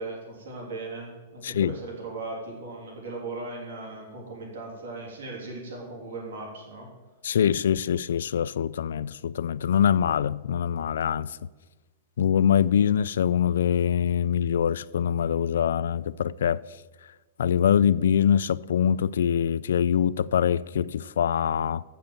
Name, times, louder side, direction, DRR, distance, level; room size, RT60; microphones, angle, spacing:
voice 1, 0.0-6.9, right 3 dB, 85° right, 3.3 m, -38 dB
voice 2, 1.4-1.7 7.2-11.4 12.2-16.6 17.4-21.8, left 8 dB, 85° left, 0.3 m, -24 dB
7.6 x 6.9 x 7.1 m
supercardioid pair, 170°, 0 cm